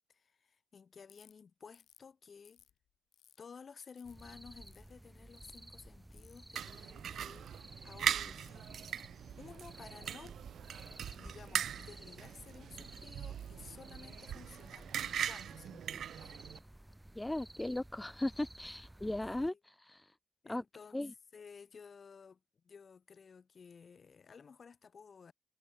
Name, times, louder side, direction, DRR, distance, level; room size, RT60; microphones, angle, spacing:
voice 1, 0.1-2.6 3.4-7.5 7.8-8.7 9.4-10.4 11.1-16.3 18.7-18.8 19.4-19.6 20.4-25.3, left 6 dB, 40° left, 2.8 m, -55 dB
Ratchet pawl, 1.1-1.3 1.7-2.1 2.5-3.4 3.9-4.2 4.6-4.9 5.4-5.6 6.1-6.4 7.0-7.5 8.2-8.9 9.5-10.3 10.8-11.5 12.2-12.6 13.4-13.6 14.3-15.8, left 9 dB, 65° left, 5.1 m, -66 dB
sound 1, 4.0-19.5, right 1 dB, 10° right, 2.5 m, -54 dB
sound 2, 6.6-16.6, right 9 dB, 65° right, 1.2 m, -40 dB
voice 2, 17.2-20.1 20.5-20.6 20.9-21.1, left 1 dB, 10° left, 0.5 m, -37 dB
cardioid pair, 90°, 0 cm